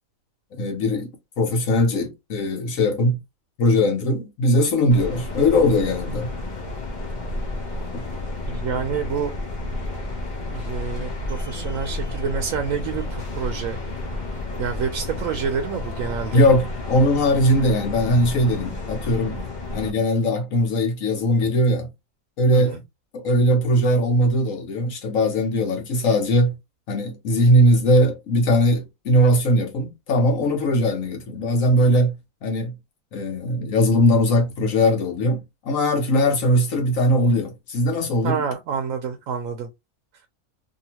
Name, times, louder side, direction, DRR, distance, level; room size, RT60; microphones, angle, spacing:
voice 1, 0.5-3.2 3.6-6.3 7.9-8.0 16.3-19.4 19.7-21.9 22.4-22.8 23.1-26.6 26.9-32.1 32.4-32.7 33.1-38.4, equal, 65° left, 1.3 m, -20 dB
sound 1, 4.9-19.9, left 2 dB, 40° left, 0.7 m, -31 dB
voice 2, 8.5-9.3 10.5-13.8 14.0-14.1 14.6-16.4 22.5-22.8 38.2-39.7, right 6 dB, 70° right, 0.9 m, -28 dB
2.8 x 2.7 x 2.8 m
omnidirectional pair, 1.5 m